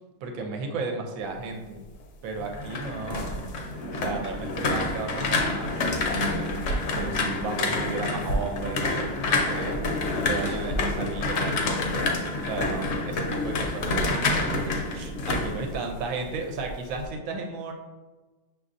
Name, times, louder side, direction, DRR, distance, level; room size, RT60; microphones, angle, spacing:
voice 1, 0.2-1.8 2.2-3.4 3.9-6.5 6.9-9.8 10.1-12.1 12.5-17.7, right 3 dB, 70° right, 3 dB, 1.0 m, -34 dB
sound 1, 2.4-16.4 16.7-17.1, left 2 dB, 65° left, 0.9 m, -28 dB
6.4 x 2.7 x 2.5 m, 1.2 s
omnidirectional pair, 1.6 m